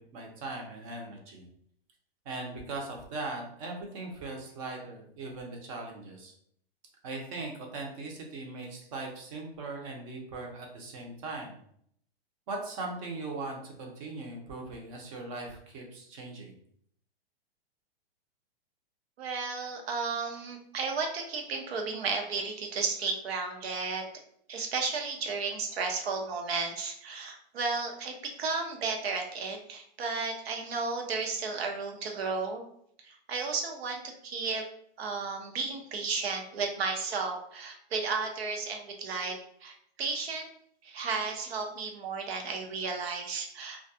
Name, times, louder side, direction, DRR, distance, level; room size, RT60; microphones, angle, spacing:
voice 1, 0.0-1.5 2.3-6.3 7.0-11.6 12.5-16.6, right 3 dB, 35° right, 1 dB, 0.6 m, -39 dB
voice 2, 19.2-24.1 24.5-32.6 33.0-34.6 35.0-40.5 40.8-43.8, right 4 dB, 80° right, 3 dB, 0.7 m, -33 dB
2.3 x 2.2 x 2.6 m, 0.67 s
hypercardioid pair, 155°, 31 cm